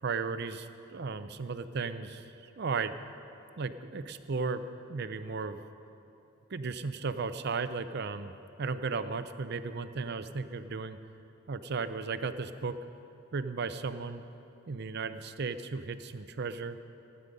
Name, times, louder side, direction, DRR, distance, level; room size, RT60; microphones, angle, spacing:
voice 1, 0.0-2.9 3.6-5.6 6.5-8.3 8.6-11.0 11.5-12.8 13.3-14.2 14.7-16.8, right 4 dB, 50° right, 11 dB, 0.5 m, -35 dB
15.5 x 9.8 x 5.3 m, 2.8 s
head